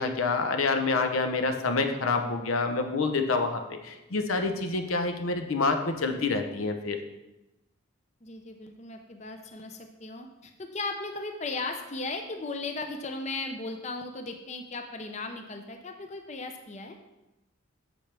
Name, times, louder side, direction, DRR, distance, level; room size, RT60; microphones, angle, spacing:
voice 1, 0.0-7.0, left 3 dB, 85° left, 6 dB, 0.8 m, -27 dB
voice 2, 8.2-16.9, left 3 dB, 35° left, 5 dB, 0.6 m, -36 dB
8.8 x 6.6 x 3.4 m, 0.98 s
head